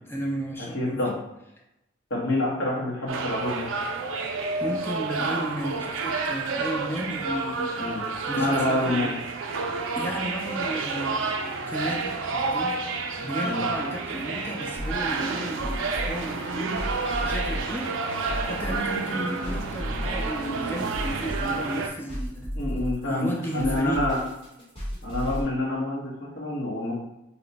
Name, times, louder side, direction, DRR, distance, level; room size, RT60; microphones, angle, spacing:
voice 1, 0.0-1.0 4.6-7.7 8.3-9.1 10.0-11.4 11.7-12.8 13.2-16.8 17.1-17.9 18.5-22.5 23.1-24.1, right 1 dB, 10° left, -1 dB, 0.4 m, -33 dB
voice 2, 0.7-1.2 2.1-3.7 7.8-8.0 8.4-9.1 13.4-13.7 22.6-24.2 25.0-27.0, left 1 dB, 70° left, -4 dB, 1.1 m, -27 dB
sound 1, 3.1-21.9, right 3 dB, 70° right, 0.4 m, -30 dB
sound 2, 14.8-25.4, equal, 25° left, 1.0 m, -34 dB
2.9 x 2.2 x 3.9 m, 0.88 s
head